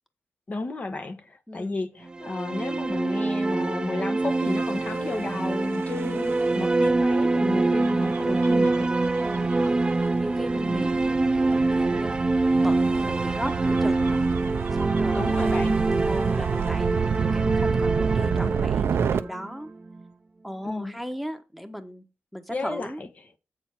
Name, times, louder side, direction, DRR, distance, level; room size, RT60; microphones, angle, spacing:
voice 1, 0.5-9.1 10.6-10.8 15.1-15.8 20.6-20.9 22.5-23.1, left 3 dB, 40° left, 1.2 m, -33 dB
voice 2, 1.5-1.8 9.2-9.9 10.2-12.2 12.6-14.3 14.7-15.7 16.0-19.7 20.4-22.0 22.3-23.0, equal, ahead, 1.2 m, -37 dB
sound 1, 2.1-20.0, right 2 dB, 20° right, 0.3 m, -25 dB
Gull seagull / Waves surf / Siren, 4.5-19.2, right 7 dB, 70° right, 0.6 m, -31 dB
8.3 x 4.3 x 5.9 m
cardioid pair, 85°, 4 cm